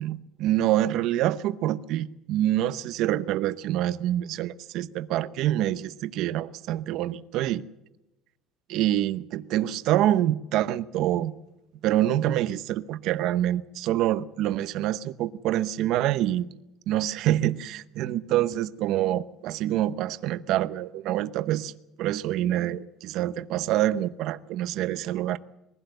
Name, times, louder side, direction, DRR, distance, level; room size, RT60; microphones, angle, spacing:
voice 1, 0.0-7.6 8.7-11.3 11.8-16.5 16.9-25.4, right 13 dB, 55° right, 0.8 m, -26 dB
22.0 x 16.0 x 7.8 m
cardioid pair, 170°, 0 cm